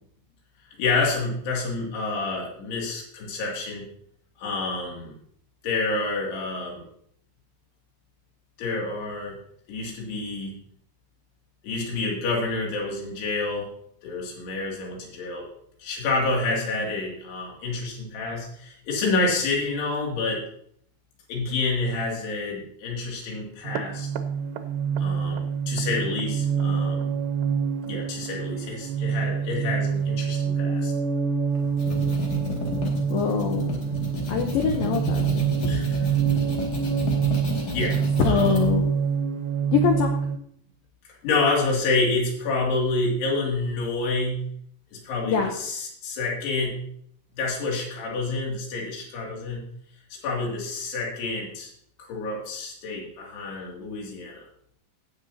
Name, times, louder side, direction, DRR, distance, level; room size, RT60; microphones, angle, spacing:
voice 1, 0.8-3.9 4.4-5.1 5.6-6.8 8.6-9.4 9.7-10.5 11.6-13.7 14.0-15.5 15.8-20.4 21.3-24.1 25.0-27.2 27.8-30.9 35.7-36.1 37.7-38.0 38.3-38.6 41.2-44.5 44.9-46.8 47.4-49.6 50.2-51.7 52.1-54.4, left 3 dB, 65° left, -2 dB, 4.3 m, -28 dB
sound 1, 23.6-40.4, right 6 dB, 80° right, 2.7 m, -26 dB
sound 2, 31.6-38.6, equal, 45° left, 2.4 m, -31 dB
voice 2, 33.1-33.9 34.3-35.5 38.2-39.0 39.7-40.2 45.2-45.5, left 6 dB, 80° left, 3 dB, 2.0 m, -24 dB
18.0 x 8.0 x 2.8 m, 0.66 s
omnidirectional pair, 5.3 m